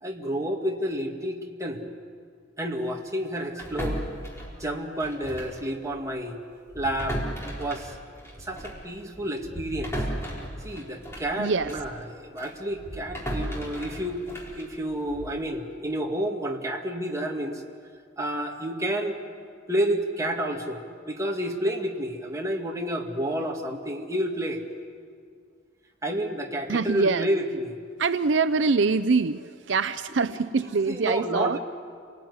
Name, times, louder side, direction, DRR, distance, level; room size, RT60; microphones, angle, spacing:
voice 1, 0.0-1.9 2.6-4.0 4.6-6.4 6.7-7.2 7.6-8.0 8.4-9.9 10.6-14.2 14.5-17.6 18.2-19.2 19.7-24.6 26.0-27.8 30.9-31.6, equal, 15° right, 1 dB, 2.1 m, -30 dB
sound 1, 3.6-5.6 5.9-6.1 6.7-11.9 12.4-15.4, equal, 15° left, 4.4 m, -36 dB
voice 2, 11.4-11.7 26.7-27.3 28.0-31.6, right 4 dB, 65° right, 12 dB, 0.6 m, -24 dB
28.0 x 19.5 x 9.6 m, 2.2 s
head